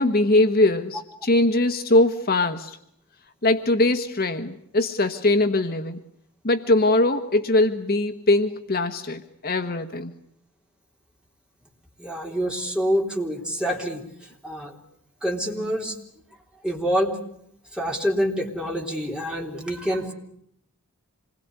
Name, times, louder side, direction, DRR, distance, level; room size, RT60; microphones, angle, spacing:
voice 1, 0.0-2.8 3.4-6.0 6.4-10.1, left 2 dB, 45° left, 8 dB, 1.2 m, -21 dB
voice 2, 12.0-14.0 14.4-14.8 15.2-16.0 16.6-17.2 17.7-20.1, equal, 5° right, 0 dB, 3.5 m, -26 dB
27.0 x 21.0 x 9.7 m, 0.72 s
head